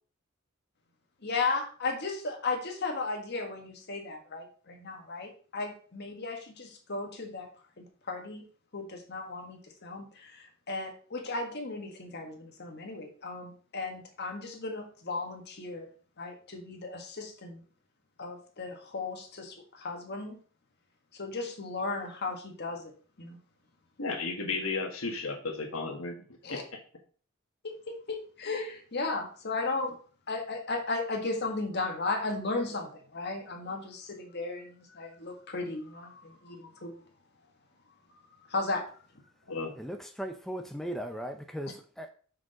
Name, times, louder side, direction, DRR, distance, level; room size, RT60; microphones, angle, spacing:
voice 1, 1.2-7.5 7.8-8.4 8.7-15.9 16.2-17.6 18.2-20.4 21.2-22.9 23.2-23.4 26.4-26.6 27.6-30.0 30.3-37.0 38.5-38.9, left 3 dB, 55° left, 3 dB, 1.7 m, -35 dB
voice 2, 24.0-26.2 26.5-26.6 39.5-39.7, left 3 dB, 80° left, 3 dB, 1.7 m, -33 dB
voice 3, 39.7-42.1, equal, ahead, 6 dB, 0.5 m, -38 dB
6.1 x 5.0 x 5.0 m, 0.42 s
head